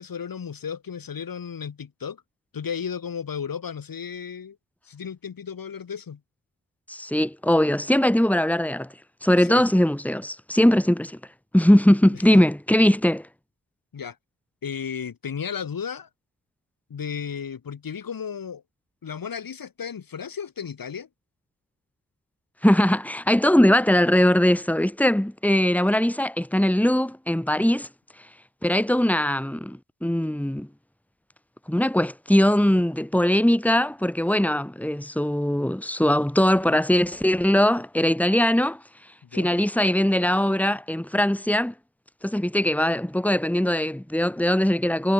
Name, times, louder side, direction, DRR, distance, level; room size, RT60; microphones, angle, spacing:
voice 1, 0.0-2.2 2.5-4.6 4.8-6.2 9.4-9.6 12.1-12.4 13.9-14.2 14.6-16.1 16.9-18.6 19.0-21.1 39.2-39.6, left 7 dB, 70° left, 6.8 m, -34 dB
voice 2, 6.9-8.9 9.2-11.2 11.5-13.3 22.6-27.9 28.6-30.7 31.7-38.8 39.3-41.7 42.2-45.1, left 1 dB, 5° left, 3.5 m, -21 dB
cardioid pair, 60°, 35 cm